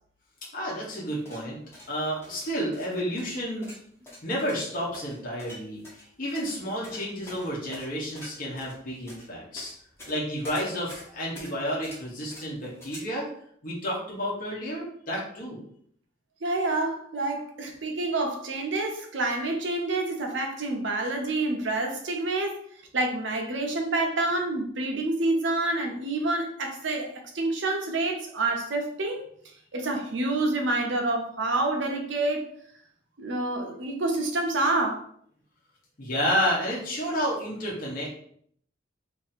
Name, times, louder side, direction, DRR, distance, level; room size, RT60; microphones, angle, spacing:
voice 1, 0.5-1.6 1.9-3.7 4.2-9.7 10.1-13.3 13.6-15.6 36.0-38.1, equal, 45° left, -5 dB, 0.9 m, -31 dB
sound 1, 1.1-13.0, left 1 dB, 15° left, 0.9 m, -47 dB
voice 2, 16.4-22.6 22.9-29.3 29.7-32.5 33.2-35.0, right 2 dB, 70° right, 3 dB, 0.7 m, -28 dB
2.7 x 2.7 x 4.1 m, 0.64 s
head